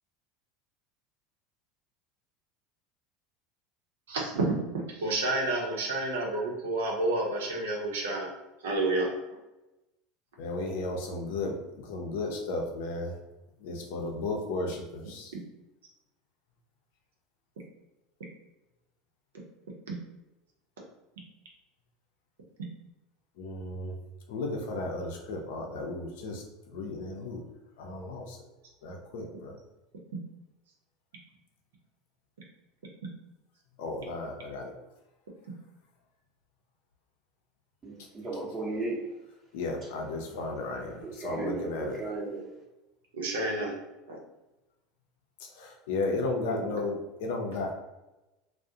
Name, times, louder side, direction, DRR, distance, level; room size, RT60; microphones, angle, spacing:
voice 1, 4.1-8.3 8.6-9.1 43.1-43.7 44.1-44.2, right 2 dB, 80° right, -1 dB, 0.7 m, -29 dB
voice 2, 10.4-13.1 13.6-15.3 23.4-23.9 24.3-27.4 27.8-28.4 28.8-29.6 33.8-34.7 39.5-42.0 45.5-47.7, left 2 dB, 75° left, 2 dB, 0.5 m, -34 dB
voice 3, 37.8-39.0 41.0-42.5, right 3 dB, 25° right, -7 dB, 0.8 m, -35 dB
2.3 x 2.0 x 2.7 m, 1.0 s
hypercardioid pair, 85°, 0 cm